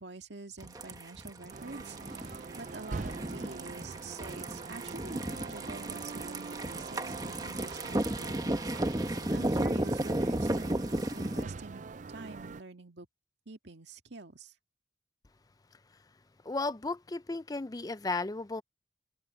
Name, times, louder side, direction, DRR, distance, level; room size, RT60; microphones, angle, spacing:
voice 1, 0.0-10.7 11.1-13.1 13.5-14.5, right 3 dB, 70° right, 2.1 m, -47 dB
sound 1, 0.6-11.4, right 1 dB, 20° right, 1.1 m, -34 dB
sound 2, 1.5-12.6, right 4 dB, 40° right, 0.5 m, -44 dB
voice 2, 16.4-18.6, left 3 dB, 20° left, 0.4 m, -34 dB
head